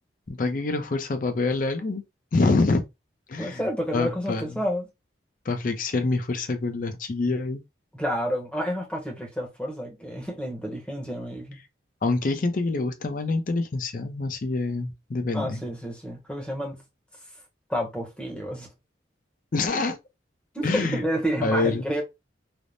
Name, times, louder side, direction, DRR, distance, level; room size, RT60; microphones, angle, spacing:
voice 1, 0.3-2.0 2.3-2.8 3.3-3.6 3.9-4.5 5.5-7.6 12.0-15.6 19.5-20.0 20.6-21.0 21.4-21.8, left 3 dB, 45° left, 0.4 m, -26 dB
voice 2, 3.4-4.9 7.9-11.6 15.3-16.8 17.7-18.7 20.5-22.0, equal, 5° left, 0.7 m, -30 dB
3.3 x 2.0 x 2.5 m
head